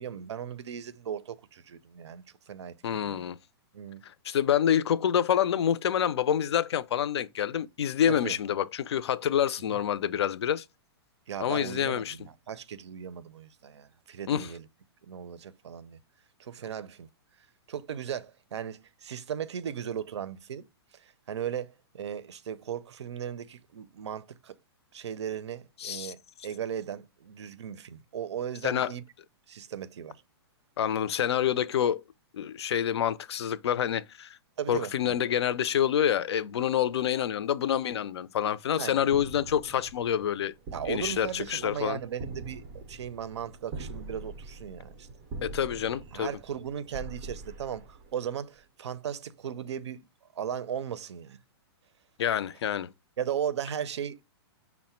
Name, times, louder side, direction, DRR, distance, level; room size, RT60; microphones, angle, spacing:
voice 1, 0.0-3.2 3.7-4.0 8.1-8.4 9.7-9.8 11.3-14.7 15.1-16.0 16.4-17.1 17.7-20.6 20.9-24.6 24.9-29.0 29.5-30.2 34.6-35.2 38.7-39.1 40.7-45.1 46.1-50.0 50.4-51.4 53.2-54.2, right 9 dB, 90° right, 0.5 m, -37 dB
voice 2, 2.8-3.4 4.2-10.6 11.4-12.2 14.3-14.5 25.8-26.1 28.6-28.9 30.8-32.0 32.4-34.4 34.7-40.5 40.9-42.0 45.4-46.3 52.2-52.9, left 9 dB, 75° left, 0.4 m, -27 dB
sound 1, 39.1-48.6, right 3 dB, 20° right, 0.4 m, -44 dB
5.6 x 2.1 x 4.2 m
hypercardioid pair, 175°, 14 cm